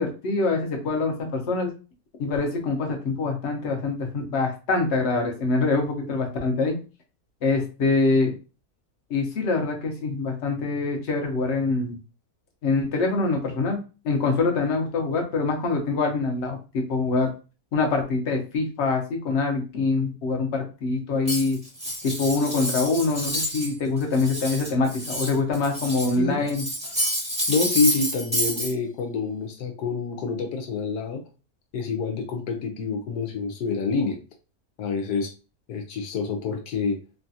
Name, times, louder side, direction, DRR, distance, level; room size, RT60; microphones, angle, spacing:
voice 1, 0.0-1.7 2.2-6.8 7.4-8.3 9.1-12.0 12.6-13.8 14.0-17.3 17.7-21.6 22.0-26.6, left 3 dB, 50° left, 2 dB, 0.9 m, -24 dB
Cutlery silverware, 21.3-23.7 24.0-26.2 26.5-28.7, equal, 5° right, 0.8 m, -28 dB
voice 2, 27.5-31.2 31.7-34.2 34.8-35.3 35.7-37.0, left 4 dB, 80° left, 3 dB, 1.2 m, -27 dB
3.2 x 2.3 x 2.7 m, 0.32 s
omnidirectional pair, 1.7 m